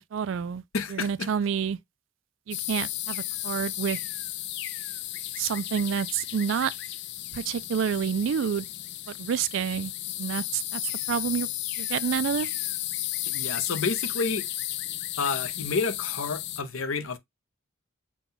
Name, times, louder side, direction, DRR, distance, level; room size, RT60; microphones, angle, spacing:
voice 1, 0.0-0.6 0.9-1.8 2.5-4.0 5.4-6.7 7.3-8.7 9.1-9.9 10.2-10.8 11.1-11.5 11.8-12.5, right 7 dB, 60° right, 0.3 m, -28 dB
voice 2, 0.7-1.3 13.3-14.4 15.2-17.2, left 4 dB, 70° left, 0.7 m, -29 dB
sound 1, 2.5-16.6, left 14 dB, 55° left, 0.4 m, -34 dB
6.0 x 2.3 x 3.9 m
head